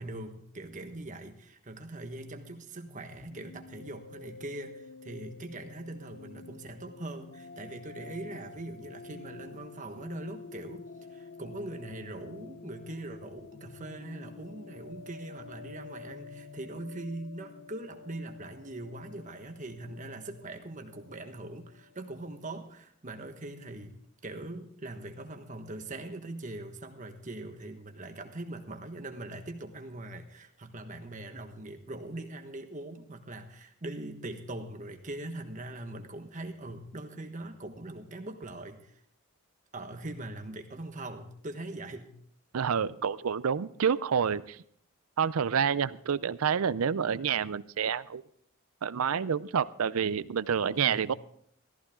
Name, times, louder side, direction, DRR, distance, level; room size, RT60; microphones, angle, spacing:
voice 1, 0.0-10.8 11.1-23.9 24.2-39.0 39.7-42.1 50.8-51.1, right 2 dB, 35° right, 5 dB, 1.3 m, -42 dB
sound 1, 2.9-22.4, left 4 dB, 65° left, 0.6 m, -49 dB
voice 2, 42.5-44.6 45.2-48.2 48.8-51.1, right 7 dB, 85° right, 16 dB, 0.5 m, -28 dB
14.5 x 14.5 x 3.7 m, 0.66 s
head